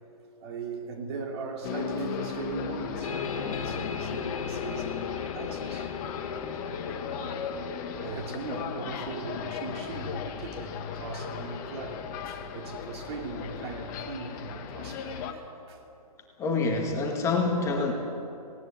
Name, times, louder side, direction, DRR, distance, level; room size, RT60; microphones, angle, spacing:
voice 1, 0.4-5.9 6.6-7.6 8.0-15.8, right 4 dB, 45° right, 2 dB, 3.0 m, -39 dB
sound 1, 1.6-15.3, left 7 dB, 30° left, 1.6 m, -36 dB
sound 2, 3.0-14.2, left 7 dB, 60° left, 2.0 m, -40 dB
voice 2, 16.4-17.9, left 3 dB, 15° left, 1 dB, 1.8 m, -26 dB
19.0 x 17.5 x 8.3 m, 2.6 s
hypercardioid pair, 150°, 19 cm